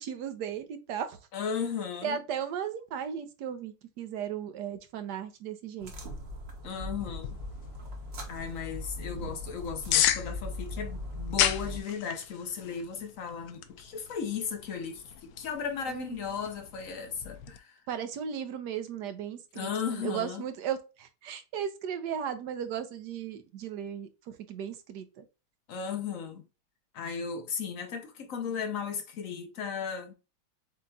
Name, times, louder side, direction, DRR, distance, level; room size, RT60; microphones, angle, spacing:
voice 1, 0.0-1.2 2.0-5.9 15.9-16.2 17.9-24.1 24.5-25.2, right 8 dB, 70° right, 1.1 m, -36 dB
voice 2, 1.3-2.2 6.6-7.4 8.3-17.7 19.5-20.4 25.7-26.4 26.9-30.1, left 6 dB, 55° left, 0.9 m, -36 dB
sound 1, 5.8-11.8, left 1 dB, 45° right, 0.8 m, -39 dB
sound 2, 7.0-17.6, left 11 dB, 75° left, 1.3 m, -35 dB
7.6 x 3.0 x 2.3 m
omnidirectional pair, 2.2 m